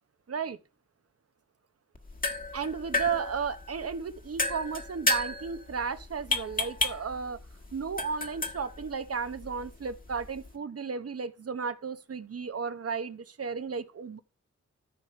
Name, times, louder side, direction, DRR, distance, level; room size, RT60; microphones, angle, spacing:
voice 1, 0.3-0.6 2.5-7.4 7.7-14.2, right 5 dB, 55° right, 1.0 m, -34 dB
sound 1, 1.9-10.6, left 2 dB, 30° left, 1.4 m, -34 dB
14.0 x 5.0 x 4.4 m
cardioid pair, 60°, 29 cm